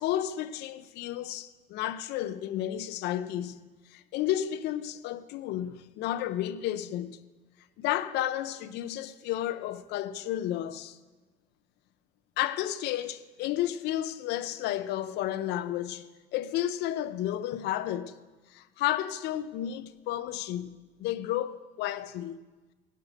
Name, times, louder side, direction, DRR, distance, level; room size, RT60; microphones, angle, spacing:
voice 1, 0.0-7.2 7.8-11.0 12.4-18.2 18.5-22.4, left 12 dB, 85° left, 0.6 m, -32 dB
17.0 x 6.8 x 6.3 m
cardioid pair, 110°, 17 cm